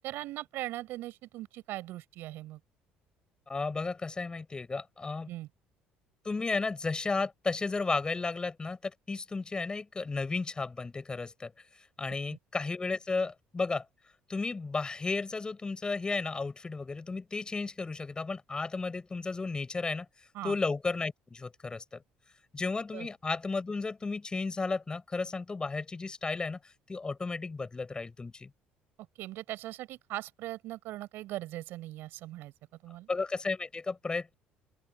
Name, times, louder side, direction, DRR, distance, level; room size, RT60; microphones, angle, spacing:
voice 1, 0.0-2.6 5.3-5.5 20.3-20.6 22.9-23.1 29.2-32.5 32.8-33.1, right 16 dB, 70° right, 7.1 m, -40 dB
voice 2, 3.5-5.3 6.2-11.5 12.0-13.8 14.3-20.1 20.4-22.0 22.5-28.5 33.1-34.3, left 3 dB, 25° left, 7.8 m, -33 dB
open air
supercardioid pair, 90°, 4 cm